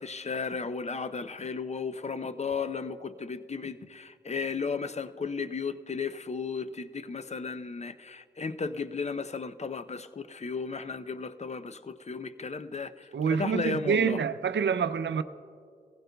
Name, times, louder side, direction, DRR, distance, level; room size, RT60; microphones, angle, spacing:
voice 1, 0.0-14.2, left 4 dB, 40° left, 0.5 m, -34 dB
voice 2, 13.1-15.2, right 6 dB, 80° right, 0.5 m, -27 dB
19.0 x 15.5 x 2.3 m
cardioid pair, 45°, 18 cm